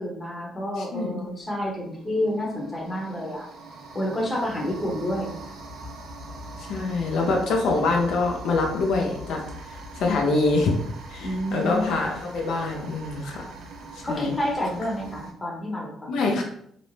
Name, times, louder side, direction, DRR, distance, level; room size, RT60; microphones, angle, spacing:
voice 1, 0.0-3.5 3.9-5.3 11.2-11.8 14.0-16.0, left 1 dB, 15° left, -2 dB, 0.8 m, -29 dB
voice 2, 0.8-1.2 6.6-9.4 9.7-10.7 11.1-13.5 13.9-14.3 16.1-16.4, left 3 dB, 70° left, 0 dB, 0.5 m, -25 dB
sound 1, 1.3-1.4 1.9-15.3, right 1 dB, 65° right, 0.5 m, -41 dB
2.5 x 2.0 x 3.0 m, 0.69 s
cardioid pair, 130°, 0 cm